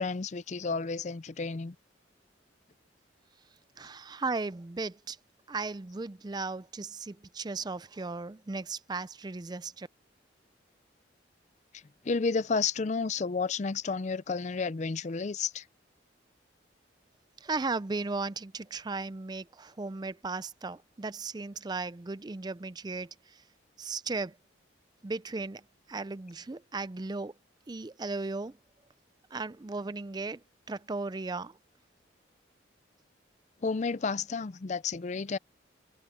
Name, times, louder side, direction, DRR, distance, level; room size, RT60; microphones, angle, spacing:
voice 1, 0.0-1.7 12.0-15.6 33.6-35.4, left 4 dB, 40° left, 0.4 m, -31 dB
voice 2, 3.8-5.2 5.5-9.9 17.4-23.4 23.8-24.4 25.0-25.6 25.9-27.3 27.7-28.6 29.3-30.4 30.7-31.6, right 3 dB, 20° right, 0.4 m, -36 dB
head